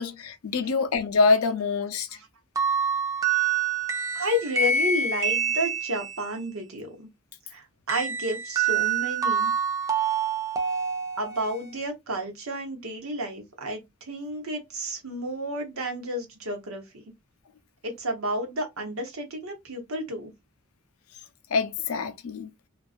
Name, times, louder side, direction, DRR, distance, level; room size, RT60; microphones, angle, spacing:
voice 1, 0.0-2.1 21.5-22.5, left 4 dB, 85° left, 0.5 m, -25 dB
sound 1, 2.6-6.3 7.9-11.7, right 6 dB, 15° right, 0.3 m, -26 dB
voice 2, 4.1-7.1 7.5-9.5 11.2-17.0 17.8-20.3, equal, 80° right, 1.0 m, -31 dB
2.5 x 2.2 x 2.4 m
head